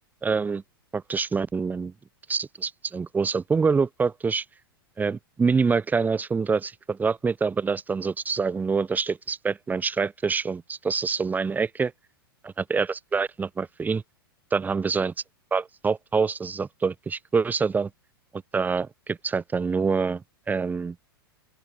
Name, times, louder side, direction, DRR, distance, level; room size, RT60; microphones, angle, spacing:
voice 1, 0.2-0.6 0.9-1.9 2.3-4.4 5.0-11.9 12.4-14.0 14.5-15.1 15.5-17.9 18.3-21.0, right 5 dB, 15° right, 6.4 m, -26 dB
open air
figure-of-eight pair, 95°, 12 cm